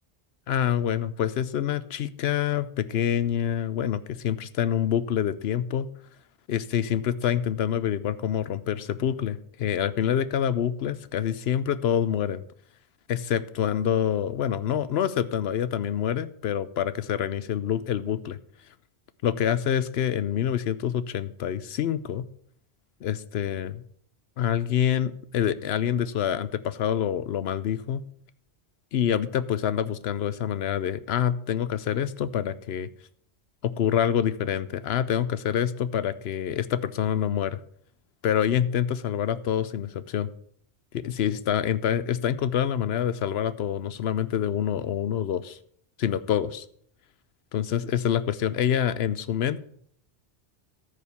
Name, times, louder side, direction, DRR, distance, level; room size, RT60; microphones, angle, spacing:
voice 1, 0.5-5.9 6.5-12.4 13.1-18.4 19.2-22.2 23.0-23.8 24.4-28.0 28.9-32.9 33.6-37.6 38.2-40.3 40.9-45.6 46.0-46.7 47.5-49.6, left 9 dB, 80° left, 15 dB, 0.9 m, -26 dB
14.0 x 5.1 x 6.9 m, 0.63 s
omnidirectional pair, 1.0 m